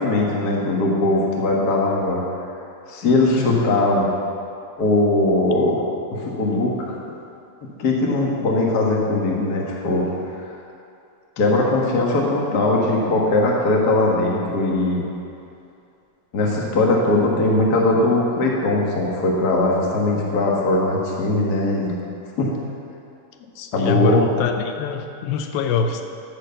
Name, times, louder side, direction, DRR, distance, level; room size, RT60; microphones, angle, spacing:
voice 1, 0.0-2.2 2.9-4.1 4.8-5.8 6.1-7.0 7.8-10.1 11.4-15.0 16.3-21.9 22.4-22.5 23.7-24.3, left 2 dB, 70° left, -2 dB, 0.9 m, -20 dB
voice 2, 3.3-3.7 23.6-26.0, left 5 dB, 85° left, 6 dB, 2.5 m, -24 dB
13.5 x 6.4 x 6.7 m, 2.6 s
omnidirectional pair, 4.1 m